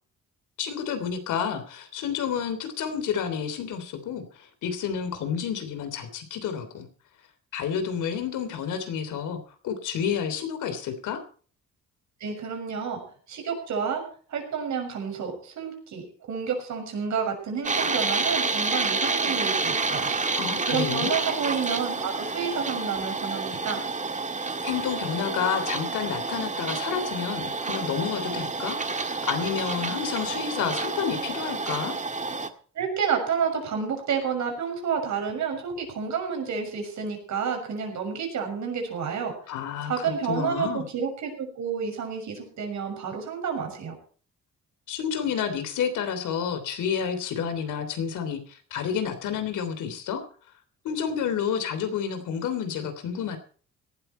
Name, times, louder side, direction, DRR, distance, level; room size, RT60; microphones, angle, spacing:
voice 1, 0.6-6.9 7.5-11.2 20.4-21.2 24.6-31.9 39.5-40.8 44.9-50.2 50.8-53.4, left 7 dB, 85° left, 9 dB, 3.3 m, -30 dB
voice 2, 12.2-13.0 13.3-14.0 14.3-20.1 20.7-23.8 32.7-39.3 39.8-43.9, right 6 dB, 70° right, 3 dB, 6.5 m, -30 dB
sound 1, 17.6-32.5, right 3 dB, 25° right, 1.7 m, -29 dB
18.0 x 12.5 x 4.4 m, 0.42 s
cardioid pair, 90°, 30 cm